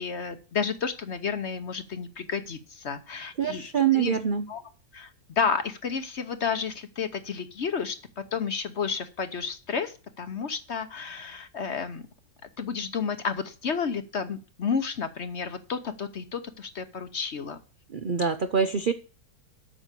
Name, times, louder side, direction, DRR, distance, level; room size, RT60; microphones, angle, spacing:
voice 1, 0.0-3.6 3.9-4.2 4.5-4.6 4.9-12.0 12.6-17.6, left 6 dB, 50° left, 10 dB, 1.0 m, -31 dB
voice 2, 3.4-4.5 17.9-18.9, right 7 dB, 75° right, 9 dB, 0.4 m, -25 dB
8.9 x 6.2 x 8.2 m, 0.35 s
omnidirectional pair, 1.8 m